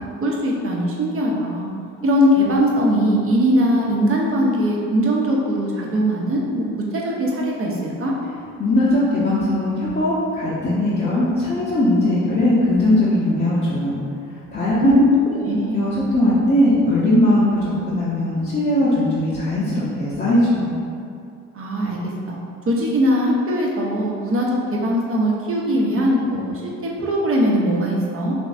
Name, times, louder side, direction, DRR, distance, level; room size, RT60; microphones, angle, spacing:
voice 1, 0.0-1.7 2.0-8.1 14.8-15.1 15.3-15.8 21.5-22.4 22.7-28.3, equal, 45° right, -3 dB, 0.8 m, -20 dB
voice 2, 8.6-14.0 14.5-15.0 15.7-20.8, left 1 dB, 30° left, -10 dB, 0.9 m, -19 dB
3.5 x 3.0 x 2.6 m, 2.4 s
supercardioid pair, 60°, 32 cm